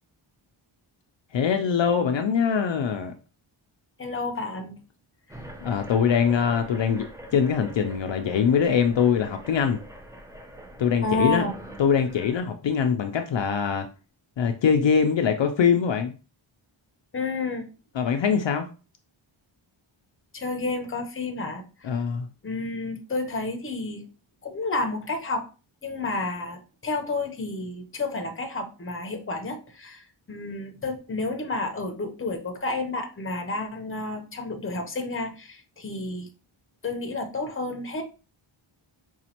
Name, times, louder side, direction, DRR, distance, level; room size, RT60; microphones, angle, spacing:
voice 1, 1.3-3.1 5.6-7.0 7.3-9.8 10.8-11.5 11.8-13.9 14.4-16.1 18.0-18.7 21.8-22.3, left 7 dB, 65° left, 5 dB, 0.5 m, -23 dB
voice 2, 4.0-4.7 5.3-5.4 11.0-11.6 17.1-17.7 20.3-22.0 22.4-24.0 24.4-25.5 25.8-36.3 36.8-38.0, left 2 dB, 25° left, 5 dB, 0.7 m, -30 dB
sound 1, 5.3-12.4, right 1 dB, 5° right, 0.5 m, -44 dB
5.1 x 2.4 x 2.8 m, 0.33 s
wide cardioid pair, 105°, 49 cm